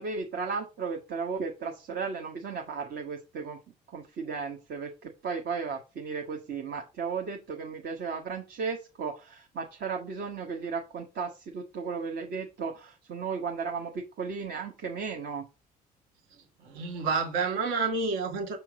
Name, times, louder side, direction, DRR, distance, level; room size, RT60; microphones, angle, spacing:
voice 1, 0.0-3.6 3.9-15.4, right 5 dB, 50° right, 1.2 m, -35 dB
voice 2, 16.6-18.6, right 4 dB, 70° right, 1.7 m, -29 dB
6.9 x 4.5 x 4.8 m
hypercardioid pair, 55°, 21 cm